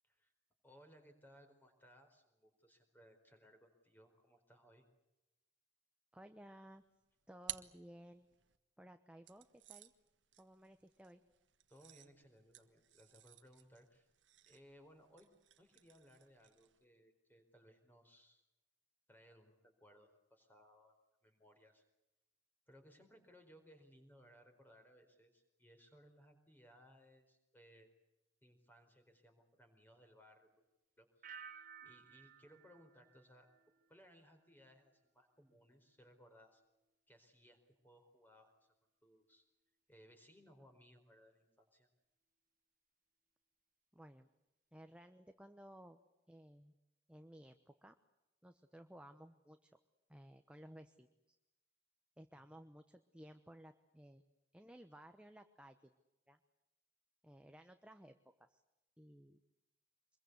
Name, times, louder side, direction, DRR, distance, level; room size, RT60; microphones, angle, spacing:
voice 1, 0.6-4.9 11.7-14.1 14.5-15.3 15.6-18.4 19.1-21.0 21.2-21.8 22.7-27.9 28.4-30.5 31.0-33.5 33.9-36.6 37.1-38.7 39.0-39.4 39.9-41.9 52.3-52.4, equal, 10° left, 5 dB, 4.4 m, -64 dB
voice 2, 6.1-6.8 7.3-8.3 8.8-9.9 10.4-11.2 43.9-44.3 44.7-46.0 46.3-46.7 47.1-48.0 48.4-49.8 50.1-51.4 52.2-54.2 54.5-55.9 56.3-56.4 57.2-58.6 59.0-59.4, equal, 5° right, 7 dB, 1.0 m, -58 dB
sound 1, 6.8-8.6 9.2-16.8, right 14 dB, 80° right, 1.4 m, -55 dB
sound 2, 31.2-34.1 34.4-34.9, right 6 dB, 45° right, 1.3 m, -57 dB
25.5 x 22.0 x 8.3 m, 0.95 s
head